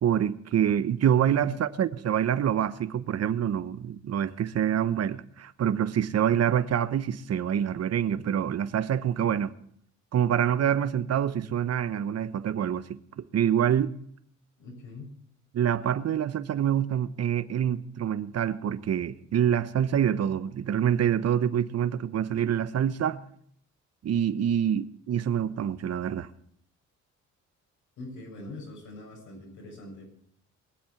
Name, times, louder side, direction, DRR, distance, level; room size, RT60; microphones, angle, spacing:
voice 1, 0.0-9.5 10.1-12.8 13.3-13.9 15.5-23.2 24.0-26.3, right 9 dB, 55° right, 1.0 m, -26 dB
voice 2, 1.1-1.7 14.6-15.2 28.0-30.1, left 2 dB, 75° left, 6.6 m, -43 dB
22.0 x 7.9 x 7.2 m
cardioid pair, 90°, 30 cm